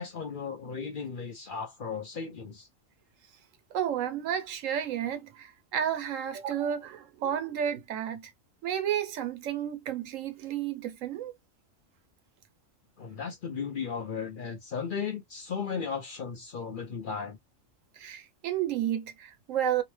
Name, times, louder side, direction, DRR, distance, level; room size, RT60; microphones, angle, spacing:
voice 1, 0.0-2.7 13.0-17.4, left 6 dB, 55° left, 0.6 m, -35 dB
voice 2, 3.7-8.3 8.6-11.3 18.0-19.8, right 9 dB, 80° right, 1.1 m, -31 dB
2.8 x 2.0 x 3.1 m
omnidirectional pair, 1.3 m